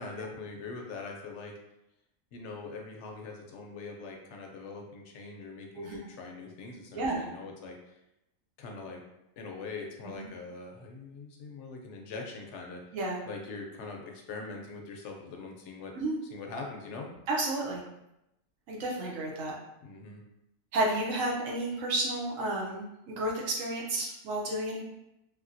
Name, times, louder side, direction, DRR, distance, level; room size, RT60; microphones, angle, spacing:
voice 1, 0.0-1.5 2.3-8.0 8.6-9.0 9.4-12.8 13.2-15.9 16.3-17.1 19.8-20.2, left 4 dB, 70° left, 1 dB, 0.8 m, -42 dB
voice 2, 17.3-17.8 18.7-19.6 20.7-24.8, right 1 dB, 85° right, -2 dB, 1.1 m, -31 dB
3.3 x 2.7 x 2.5 m, 0.88 s
omnidirectional pair, 1.3 m